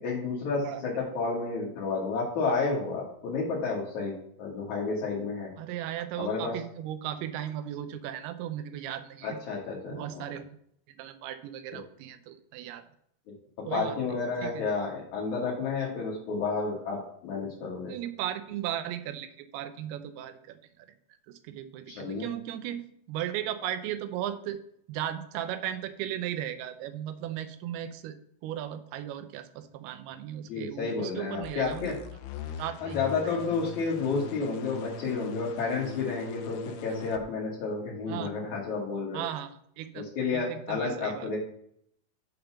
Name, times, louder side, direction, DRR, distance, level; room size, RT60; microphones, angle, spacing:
voice 1, 0.0-5.5 6.2-6.5 9.2-10.3 13.6-17.9 21.9-22.3 30.5-31.9 32.8-39.2 39.9-41.4, left 4 dB, 60° left, -5 dB, 2.6 m, -31 dB
voice 2, 5.6-9.4 9.9-10.6 11.0-12.8 13.7-14.2 14.4-14.7 17.9-20.9 21.3-24.6 24.9-28.2 28.4-31.9 32.6-33.0 33.2-33.3 38.1-38.3 39.1-40.1 40.3-41.3, right 11 dB, 85° right, 10 dB, 2.7 m, -36 dB
sound 1, 31.4-37.2, left 5 dB, 75° left, 2.0 m, -41 dB
6.8 x 5.1 x 5.9 m, 0.68 s
omnidirectional pair, 4.4 m